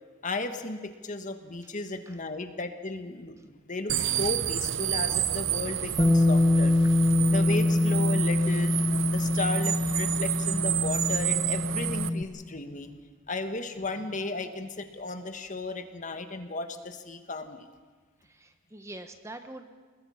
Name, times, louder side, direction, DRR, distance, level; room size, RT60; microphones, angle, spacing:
voice 1, 0.2-6.7 7.3-8.7 9.1-13.0 13.3-17.7, left 2 dB, 40° left, 7 dB, 1.6 m, -35 dB
sound 1, 3.9-12.1, right 11 dB, 75° right, 0.9 m, -30 dB
Bass guitar, 6.0-12.2, left 2 dB, 15° left, 0.8 m, -24 dB
voice 2, 18.2-19.7, right 1 dB, 15° right, 8 dB, 1.1 m, -44 dB
29.0 x 20.5 x 5.8 m, 1.5 s
head